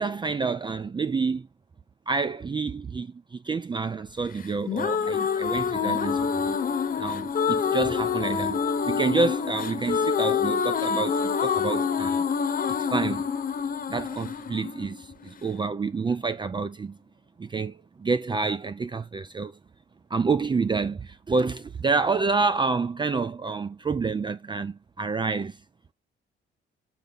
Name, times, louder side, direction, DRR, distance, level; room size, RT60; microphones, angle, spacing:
voice 1, 0.0-1.5 2.1-6.6 7.0-12.2 12.7-13.3 13.9-17.0 17.4-19.6 20.1-25.6, right 4 dB, 25° right, 0.5 m, -28 dB
sound 1, 4.4-15.5, left 6 dB, 45° left, 1.1 m, -26 dB
8.6 x 3.9 x 3.7 m
cardioid pair, 90°, 20 cm